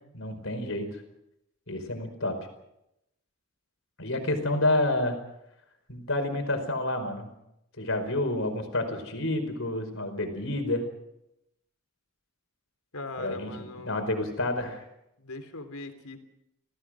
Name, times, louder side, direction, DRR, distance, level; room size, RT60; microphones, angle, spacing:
voice 1, 0.1-1.0 1.7-2.3 4.0-5.2 5.9-7.3 7.8-10.8 13.2-14.8, left 1 dB, 60° left, 7 dB, 4.9 m, -29 dB
voice 2, 12.9-14.1 15.2-16.2, left 2 dB, 80° left, 8 dB, 3.4 m, -39 dB
28.5 x 18.0 x 6.3 m, 0.84 s
head